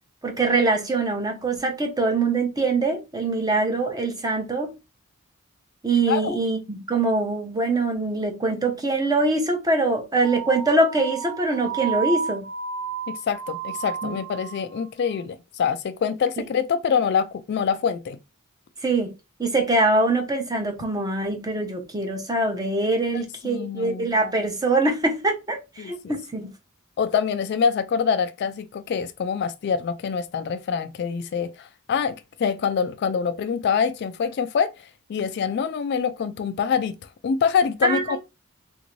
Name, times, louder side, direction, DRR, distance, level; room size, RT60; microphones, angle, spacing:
voice 1, 0.2-4.7 5.8-12.5 14.0-14.1 16.4-16.5 18.8-19.1 19.4-26.5 37.8-38.2, right 2 dB, 15° right, 0.7 m, -23 dB
sound 1, 10.2-14.8, right 6 dB, 55° right, 1.1 m, -32 dB
voice 2, 13.1-18.2 23.1-24.1 25.8-26.2 27.0-37.0 37.2-38.2, left 6 dB, 50° left, 0.3 m, -25 dB
3.3 x 2.6 x 3.0 m
head